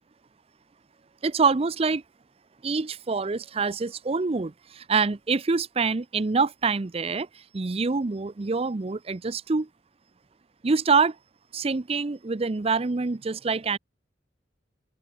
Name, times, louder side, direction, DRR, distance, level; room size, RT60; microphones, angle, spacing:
voice 1, 1.2-2.0 2.6-9.7 10.6-11.2 11.5-13.8, right 4 dB, 35° right, 0.5 m, -25 dB
open air
head